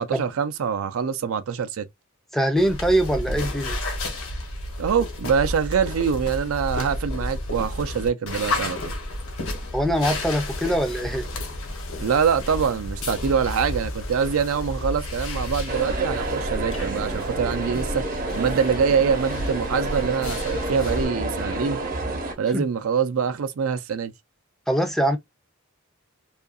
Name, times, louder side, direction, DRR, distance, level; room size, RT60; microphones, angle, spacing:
voice 1, 0.0-1.9 4.8-8.9 12.0-18.0 18.3-21.8 22.4-24.1, right 6 dB, 75° right, 0.4 m, -24 dB
voice 2, 2.3-3.8 9.7-11.3 22.5-22.6 24.7-25.2, right 1 dB, ahead, 0.4 m, -23 dB
sound 1, 2.6-21.1, left 1 dB, 80° left, 1.1 m, -32 dB
sound 2, 10.2-17.7, left 2 dB, 60° left, 0.7 m, -40 dB
sound 3, 15.7-22.3, right 2 dB, 40° right, 0.7 m, -29 dB
2.7 x 2.4 x 2.3 m
head